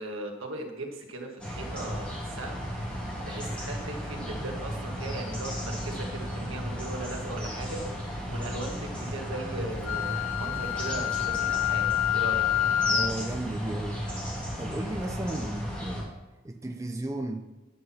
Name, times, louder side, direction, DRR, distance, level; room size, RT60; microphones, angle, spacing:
voice 1, 0.0-2.6 3.2-7.8 8.3-11.8 12.1-12.5, right 2 dB, 80° right, 2 dB, 1.7 m, -38 dB
sound 1, 1.4-16.0, equal, 5° left, 2.7 m, -34 dB
Wind instrument woodwind instrument, 9.9-13.2, left 12 dB, 80° left, 0.6 m, -27 dB
voice 2, 12.8-14.0 14.6-16.1 16.4-17.5, right 1 dB, 15° right, 5 dB, 0.5 m, -34 dB
10.0 x 6.0 x 5.9 m, 1.1 s
head